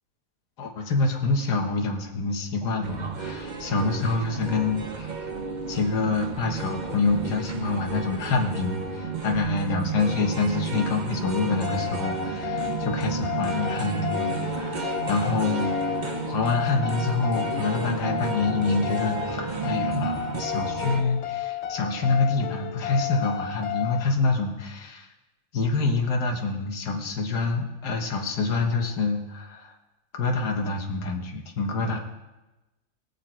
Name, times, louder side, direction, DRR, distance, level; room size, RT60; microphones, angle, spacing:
voice 1, 0.6-5.3 5.7-25.1 25.5-29.7 30.1-32.0, left 3 dB, 90° left, 2 dB, 1.8 m, -26 dB
sound 1, 2.8-21.0, right 5 dB, 40° right, 0.7 m, -32 dB
sound 2, 11.2-24.0, left 10 dB, 65° left, 0.7 m, -32 dB
18.5 x 6.7 x 4.4 m, 1.1 s
omnidirectional pair, 1.7 m